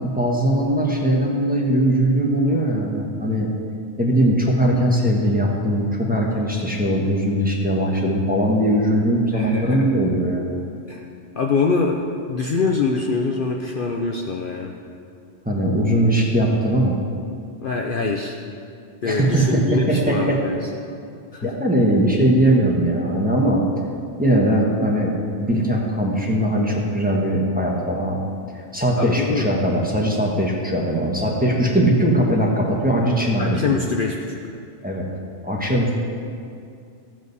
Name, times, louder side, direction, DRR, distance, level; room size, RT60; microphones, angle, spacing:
voice 1, 0.0-3.5 4.0-10.6 15.4-17.0 19.0-20.4 21.4-23.6 24.2-25.1 25.4-28.2 28.7-33.6 34.8-35.1 35.4-35.9, right 1 dB, 10° right, -3 dB, 1.2 m, -20 dB
voice 2, 9.3-10.0 10.9-11.0 11.3-12.0 12.3-14.7 17.6-18.3 19.0-20.6 21.3-21.5 29.0-29.5 33.4-34.5, left 4 dB, 55° left, 1 dB, 0.7 m, -24 dB
14.0 x 7.5 x 4.1 m, 2.4 s
omnidirectional pair, 1.2 m